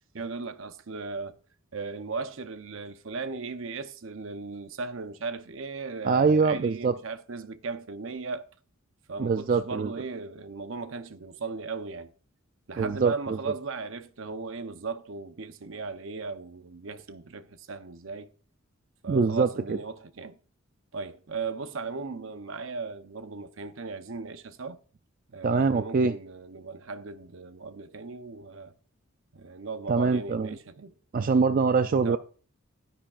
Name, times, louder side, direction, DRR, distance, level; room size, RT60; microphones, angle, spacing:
voice 1, 0.1-1.4 1.7-8.4 9.1-12.1 12.7-18.3 19.0-20.4 20.9-24.8 25.3-28.7 29.3-31.0 31.9-32.2, right 4 dB, 65° right, 0.7 m, -37 dB
voice 2, 6.0-6.9 9.2-9.9 12.8-13.1 19.1-19.8 25.4-26.1 29.9-30.5 31.1-32.2, right 4 dB, 40° right, 0.3 m, -23 dB
11.5 x 10.0 x 2.4 m
head